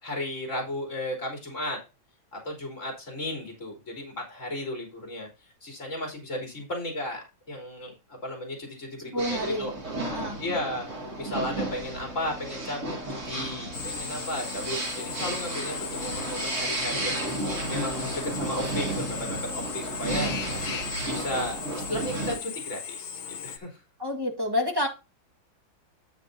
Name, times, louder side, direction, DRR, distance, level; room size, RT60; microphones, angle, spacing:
voice 1, 0.0-1.8 2.3-5.3 5.6-7.9 8.2-9.7 10.4-10.9 11.2-17.3 17.7-20.3 21.0-23.8, left 1 dB, 35° left, 3.6 m, -34 dB
voice 2, 9.1-9.7 10.0-10.4 24.0-24.9, left 1 dB, 15° right, 1.4 m, -28 dB
sound 1, 9.2-22.3, right 2 dB, 40° right, 2.3 m, -33 dB
sound 2, 10.9-20.9, left 3 dB, 60° left, 3.4 m, -47 dB
Drill, 13.7-23.6, left 7 dB, 80° left, 1.6 m, -38 dB
9.2 x 8.9 x 2.7 m
omnidirectional pair, 2.2 m